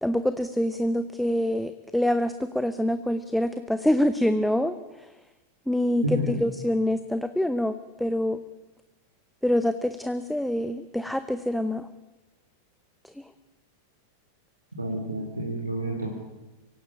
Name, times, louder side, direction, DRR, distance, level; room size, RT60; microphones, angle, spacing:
voice 1, 0.0-4.8 5.7-6.0 6.4-8.4 9.4-11.9, left 1 dB, ahead, 11 dB, 0.9 m, -25 dB
voice 2, 6.0-6.4 14.8-16.1, equal, 80° right, -1 dB, 3.7 m, -29 dB
24.5 x 17.0 x 8.8 m, 1.1 s
figure-of-eight pair, 90°, 0 cm